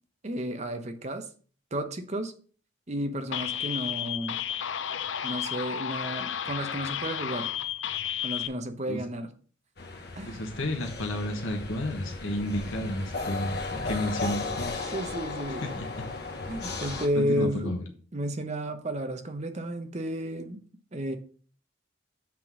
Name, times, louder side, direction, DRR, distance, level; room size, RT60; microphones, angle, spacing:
voice 1, 0.2-1.3 1.7-2.3 2.9-4.4 5.2-7.5 8.2-9.3 10.2-10.4 13.7-13.8 14.9-15.8 16.5-20.6 20.9-21.2, equal, 35° right, 8 dB, 0.9 m, -32 dB
sound 1, 3.3-8.5, left 9 dB, 70° left, 0.5 m, -32 dB
sound 2, 9.8-17.1, left 3 dB, 55° left, 1.1 m, -35 dB
voice 2, 10.3-13.6 13.8-14.8 15.5-16.1 17.1-17.8, left 1 dB, 90° left, 3 dB, 1.2 m, -32 dB
7.4 x 3.8 x 6.1 m, 0.42 s
head